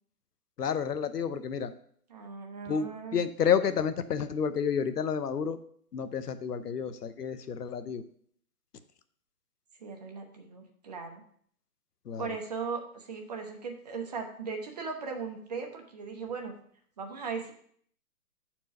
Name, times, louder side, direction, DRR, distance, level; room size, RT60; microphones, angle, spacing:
voice 1, 0.6-1.7 2.7-5.6 5.9-8.0 12.1-12.4, left 7 dB, 85° left, 12 dB, 0.8 m, -30 dB
voice 2, 2.1-3.2 9.8-11.2 12.2-16.5 17.0-17.5, right 5 dB, 25° right, 3 dB, 0.7 m, -38 dB
7.3 x 4.5 x 5.3 m, 0.63 s
hypercardioid pair, 155°, 46 cm